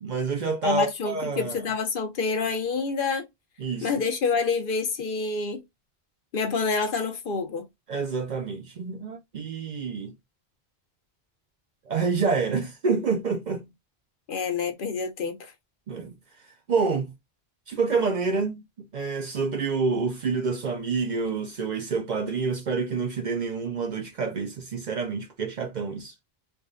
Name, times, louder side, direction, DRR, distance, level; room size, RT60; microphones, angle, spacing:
voice 1, 0.0-1.6 3.6-3.9 7.9-10.1 11.9-13.7 15.9-16.1 16.7-17.1 17.7-18.6 18.9-26.1, right 4 dB, 55° right, 0.6 m, -28 dB
voice 2, 0.6-3.3 3.8-5.6 6.3-7.7 14.3-15.5, left 4 dB, 60° left, 0.8 m, -27 dB
3.4 x 2.1 x 2.4 m
omnidirectional pair, 1.1 m